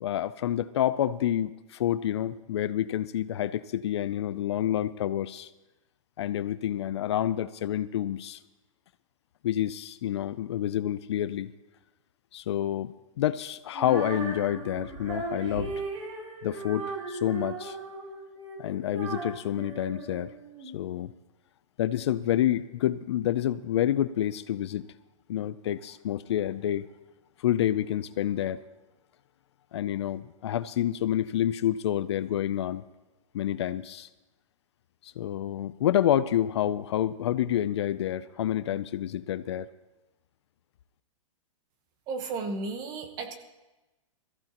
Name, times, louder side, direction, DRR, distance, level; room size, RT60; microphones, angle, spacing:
voice 1, 0.0-5.5 6.2-8.4 9.4-11.5 12.3-15.7 16.4-17.8 18.6-20.3 20.7-21.1 21.8-24.9 25.3-26.9 27.4-28.6 29.7-32.8 33.3-34.1 35.0-39.7, left 11 dB, 55° left, 14 dB, 0.5 m, -28 dB
Female singing, 13.7-20.8, right 3 dB, 60° right, 3.6 m, -37 dB
voice 2, 42.1-43.3, right 3 dB, 25° right, 7 dB, 1.1 m, -34 dB
21.0 x 14.5 x 3.0 m, 1.1 s
hypercardioid pair, 165°, 17 cm